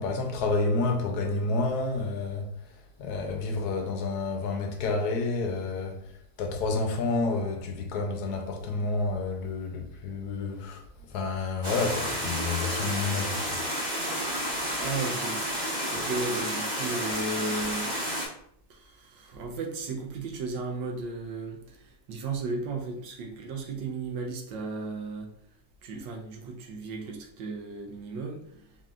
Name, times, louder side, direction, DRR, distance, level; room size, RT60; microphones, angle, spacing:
voice 1, 0.0-2.5 3.0-6.0 6.4-10.8 11.1-13.6, left 3 dB, 70° left, 1.0 m, -29 dB
sound 1, 11.6-18.3, equal, 35° right, 1.2 m, -31 dB
voice 2, 14.8-17.9 18.7-25.3 25.8-28.6, right 3 dB, 75° right, 1.4 m, -35 dB
4.2 x 3.7 x 2.4 m
omnidirectional pair, 2.1 m